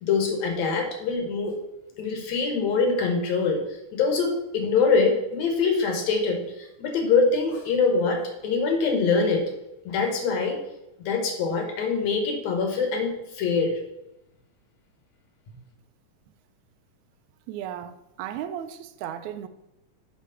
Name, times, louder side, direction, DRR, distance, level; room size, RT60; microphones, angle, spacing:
voice 1, 0.0-1.5 2.0-3.6 3.9-9.4 9.9-10.6 11.1-13.8, left 4 dB, 65° left, 2.1 m, -24 dB
voice 2, 17.5-19.5, right 10 dB, 80° right, 1.7 m, -35 dB
8.4 x 3.1 x 5.5 m
omnidirectional pair, 3.7 m